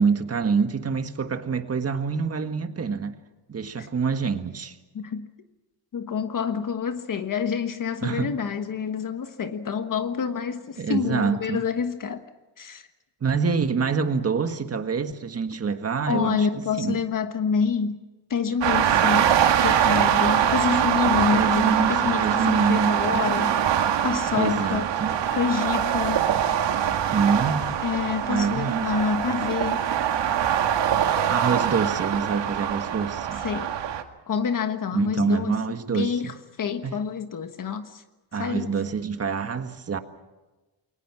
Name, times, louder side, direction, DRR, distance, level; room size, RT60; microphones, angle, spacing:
voice 1, 0.0-3.2 3.5-4.8 8.0-8.3 10.8-11.6 13.2-17.0 21.3-23.3 24.4-25.1 27.1-27.7 28.3-29.0 31.3-33.4 34.9-36.1 36.8-37.0 38.3-40.0, right 5 dB, 35° right, 1.6 m, -26 dB
voice 2, 4.9-5.3 5.9-12.2 12.6-12.9 16.1-18.0 18.3-19.3 19.6-24.9 25.3-26.2 27.8-29.8 33.3-33.7 34.3-35.6 35.9-38.0 38.4-38.7, left 6 dB, 50° left, 1.4 m, -27 dB
sound 1, 18.6-34.0, right 9 dB, 85° right, 2.1 m, -23 dB
29.0 x 22.5 x 6.0 m
wide cardioid pair, 150°, 42 cm